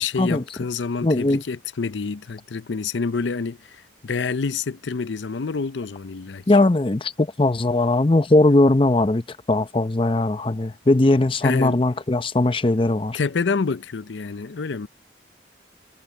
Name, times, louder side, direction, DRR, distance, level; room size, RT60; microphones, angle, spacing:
voice 1, 0.0-3.6 4.0-6.4 11.4-11.8 13.1-14.9, left 4 dB, 80° left, 0.6 m, -27 dB
voice 2, 1.0-1.4 6.5-13.2, left 2 dB, 30° left, 0.6 m, -19 dB
head